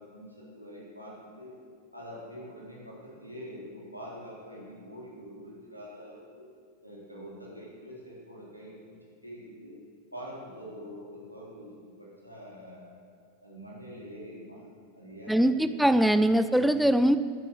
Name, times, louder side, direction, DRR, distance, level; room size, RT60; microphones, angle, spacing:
voice 1, 0.0-1.6 1.9-6.4 6.8-9.0 9.2-9.8 10.1-13.0 13.4-14.7 14.9-15.8, equal, 90° left, -5 dB, 3.5 m, -45 dB
voice 2, 15.3-17.2, right 1 dB, ahead, 12 dB, 0.5 m, -22 dB
12.0 x 11.5 x 6.8 m, 2.1 s
figure-of-eight pair, 90°, 0 cm